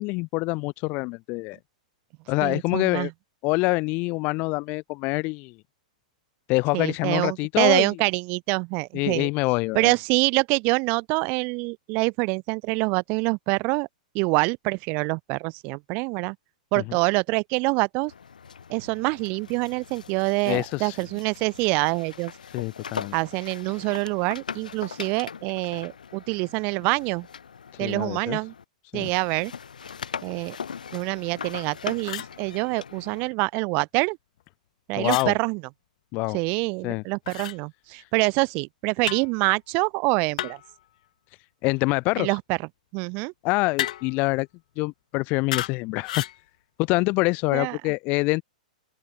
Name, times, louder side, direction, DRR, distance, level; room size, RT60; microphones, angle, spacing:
voice 1, 0.0-1.6 2.3-3.1 3.4-5.5 6.5-7.9 8.9-9.9 20.5-21.0 22.5-23.1 27.7-28.4 28.9-29.1 35.0-35.3 36.1-36.4 36.8-37.0 41.6-42.3 43.4-44.5 44.8-46.2 46.8-48.4, left 26 dB, 40° left, 0.9 m, -25 dB
voice 2, 2.4-3.1 6.7-9.3 9.7-13.9 14.1-16.4 16.7-18.1 18.7-22.3 23.1-27.3 27.8-28.5 28.9-29.5 30.2-30.6 30.9-34.2 34.9-35.6 36.3-40.6 42.2-42.6 42.9-43.3 47.5-47.8, right 30 dB, 40° right, 0.5 m, -25 dB
sound 1, 18.1-28.6 29.0-33.3, left 6 dB, 90° left, 1.6 m, -40 dB
sound 2, 31.5-31.7 32.0-32.3 35.0-35.3 37.3-37.6 39.0-39.3 40.4-40.7 43.8-44.2 45.5-45.8 46.0-46.4, left 13 dB, 65° left, 1.0 m, -32 dB
open air
hypercardioid pair, 125°, 4 cm